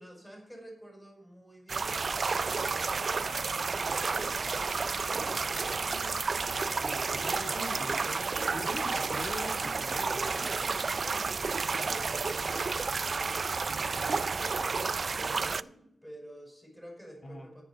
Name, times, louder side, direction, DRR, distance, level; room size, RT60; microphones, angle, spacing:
voice 1, 0.0-4.6 8.9-9.1 10.0-13.6 13.9-17.6, right 1 dB, 5° left, 1 dB, 5.4 m, -49 dB
sound 1, 1.7-15.6, right 4 dB, 45° right, 0.3 m, -31 dB
voice 2, 6.0-10.5 17.2-17.5, left 2 dB, 55° left, 1 dB, 1.9 m, -43 dB
14.0 x 10.0 x 4.6 m, 0.76 s
wide cardioid pair, 110°, 0 cm